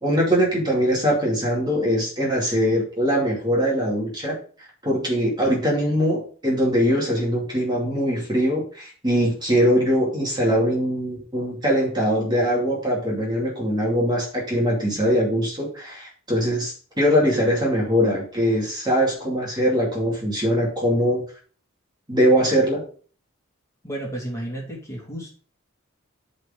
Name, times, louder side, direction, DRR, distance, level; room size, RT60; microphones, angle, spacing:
voice 1, 0.0-4.4 4.8-21.2 22.1-22.8, equal, 20° right, -3 dB, 2.4 m, -22 dB
voice 2, 23.8-25.3, right 1 dB, 15° left, -3 dB, 2.6 m, -32 dB
12.5 x 4.3 x 3.7 m, 0.42 s
head